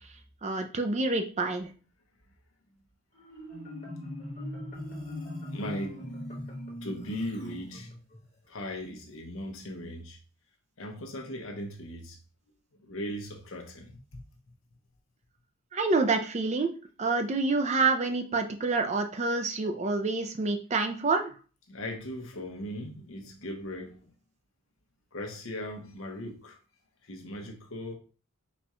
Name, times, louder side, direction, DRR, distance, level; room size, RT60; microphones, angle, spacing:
voice 1, 0.4-1.7 15.7-16.7 17.0-21.3, right 3 dB, 30° right, 0.4 m, -27 dB
Marimba xylophone, 3.1-8.3, left 1 dB, 30° left, 1.4 m, -40 dB
voice 2, 5.5-6.0 6.8-7.9 8.5-10.2 10.8-12.2 12.8-14.2 21.7-24.0 25.1-26.6 27.0-27.9, equal, 65° left, 0.9 m, -38 dB
4.3 x 2.4 x 4.2 m
head